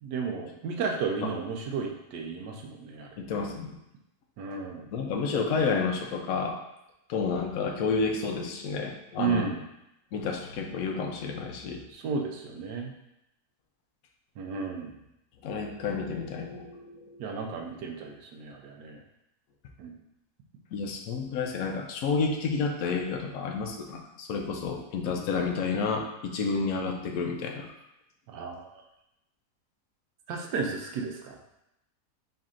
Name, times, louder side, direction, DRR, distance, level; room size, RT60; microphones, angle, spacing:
voice 1, 0.0-3.1 4.4-4.9 9.2-9.6 11.9-12.9 14.4-15.0 17.2-19.0 19.8-20.0 25.2-25.3 28.3-28.7 30.3-31.4, right 5 dB, 85° right, 2 dB, 1.2 m, -33 dB
voice 2, 3.2-3.7 4.9-6.6 7.1-9.5 10.1-11.8 15.4-17.2 20.7-27.7, left 4 dB, 65° left, 2 dB, 1.0 m, -30 dB
4.3 x 4.0 x 2.5 m, 0.86 s
omnidirectional pair, 1.8 m